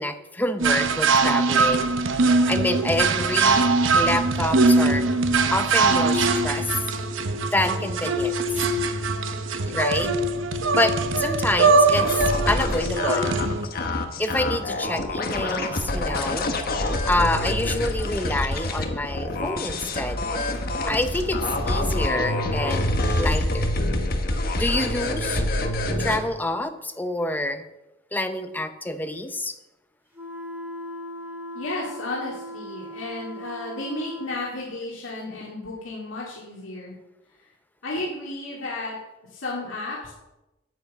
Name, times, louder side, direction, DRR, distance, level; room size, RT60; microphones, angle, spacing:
voice 1, 0.0-3.6 3.9-5.1 5.5-6.7 7.5-8.3 9.7-10.1 10.7-13.4 14.2-16.5 17.0-20.2 20.9-23.7 24.5-25.4 26.0-27.6 28.1-29.5, left 1 dB, 10° left, 8 dB, 0.7 m, -27 dB
sound 1, 0.6-13.7, right 3 dB, 80° right, 0.9 m, -22 dB
sound 2, 12.0-26.2, left 1 dB, 50° left, 1.2 m, -26 dB
sound 3, 30.1-34.4, equal, 10° right, 2.3 m, -38 dB
voice 2, 31.5-36.9 37.8-39.0 39.3-40.1, left 2 dB, 85° left, -4 dB, 2.2 m, -33 dB
9.2 x 8.4 x 6.6 m, 0.98 s
head